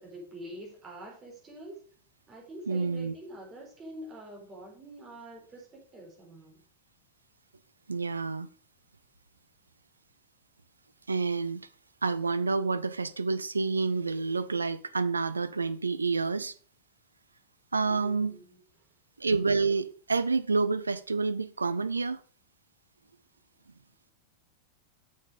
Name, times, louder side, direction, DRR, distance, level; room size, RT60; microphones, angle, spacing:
voice 1, 0.0-1.8 2.3-6.6 17.8-18.6, right 1 dB, 20° right, 4.5 m, -46 dB
voice 2, 2.7-3.1 7.9-8.5 11.1-11.7 12.0-16.5 17.7-18.4 19.2-22.2, right 4 dB, 75° right, 0.5 m, -28 dB
7.3 x 6.4 x 5.3 m
figure-of-eight pair, 90°, 0 cm